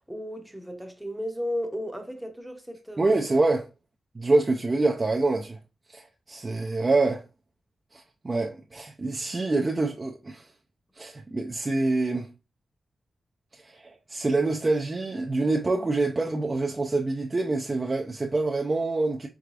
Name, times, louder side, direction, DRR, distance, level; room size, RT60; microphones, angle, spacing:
voice 1, 0.0-3.2, left 1 dB, 5° right, 0.8 m, -34 dB
voice 2, 3.0-3.7 4.1-5.6 5.9-7.2 7.9-10.5 11.0-12.3 13.5-19.3, right 2 dB, 30° right, 0.5 m, -26 dB
4.7 x 3.5 x 2.4 m
cardioid pair, 90°, 0 cm